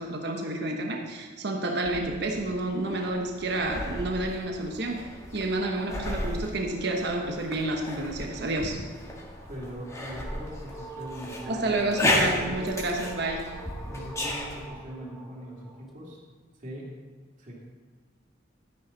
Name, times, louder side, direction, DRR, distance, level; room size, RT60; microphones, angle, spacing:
voice 1, 0.0-5.0 5.3-8.8 11.5-13.5, right 2 dB, 65° right, 2 dB, 1.2 m, -30 dB
sound 1, 1.8-14.7, left 1 dB, 15° left, 1.8 m, -34 dB
voice 2, 9.5-12.7 13.8-16.2 16.6-16.9 17.4-17.6, right 1 dB, 45° right, -4 dB, 2.7 m, -41 dB
sound 2, 10.1-15.9, right 2 dB, ahead, 1.2 m, -45 dB
12.0 x 10.0 x 4.1 m, 1.5 s
head